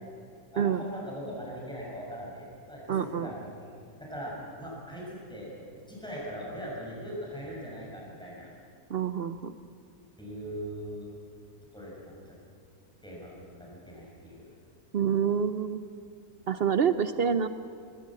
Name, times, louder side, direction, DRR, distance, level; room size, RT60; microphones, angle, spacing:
voice 1, 0.5-3.5 4.0-5.5 5.9-8.5 10.2-11.1 11.7-12.3 13.0-14.5, equal, 5° left, -4 dB, 6.6 m, -40 dB
voice 2, 2.9-3.3 8.9-9.5 14.9-15.8 16.5-17.5, right 7 dB, 60° right, 11 dB, 0.6 m, -27 dB
20.0 x 18.0 x 7.6 m, 2.4 s
omnidirectional pair, 1.6 m